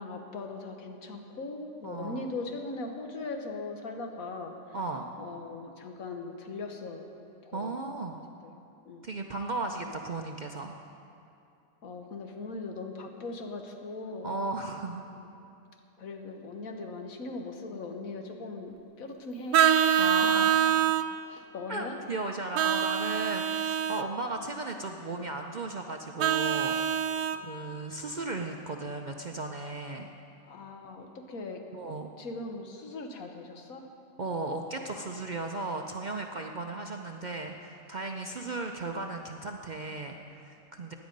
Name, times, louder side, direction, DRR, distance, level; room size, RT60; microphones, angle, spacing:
voice 1, 0.0-4.6 5.2-7.1 7.4-7.8 8.4-8.5 8.8-9.1 11.8-14.3 15.1-15.3 16.0-19.6 20.2-20.4 21.3-22.0 27.3-27.6 30.5-33.8, left 3 dB, 80° left, 4 dB, 1.6 m, -40 dB
voice 2, 1.8-2.3 4.7-5.1 7.5-8.2 9.0-10.8 14.2-15.0 20.0-20.5 21.7-26.8 27.4-30.1 31.7-32.1 34.2-40.9, right 3 dB, 50° right, 3 dB, 0.5 m, -36 dB
Vehicle horn car horn honking, 19.5-21.1 22.6-24.1 26.2-27.4, right 8 dB, 75° right, 0.9 m, -25 dB
16.5 x 10.5 x 5.3 m, 2.7 s
omnidirectional pair, 1.4 m